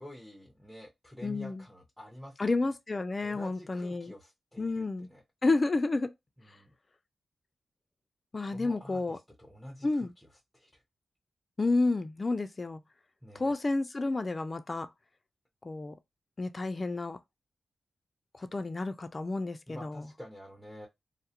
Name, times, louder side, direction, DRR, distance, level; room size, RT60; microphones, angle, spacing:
voice 1, 0.0-2.6 3.2-5.2 6.5-6.7 8.4-10.3 10.5-10.8 13.2-13.5 19.7-20.9, left 1 dB, ahead, 0.7 m, -48 dB
voice 2, 1.2-1.6 2.4-4.1 4.6-5.1 5.4-6.1 8.3-9.2 9.8-10.1 11.6-12.8 13.3-14.9 15.6-15.9 16.4-17.2 18.4-20.0, left 3 dB, 35° left, 0.3 m, -30 dB
2.3 x 2.0 x 2.8 m
cardioid pair, 70°, 0 cm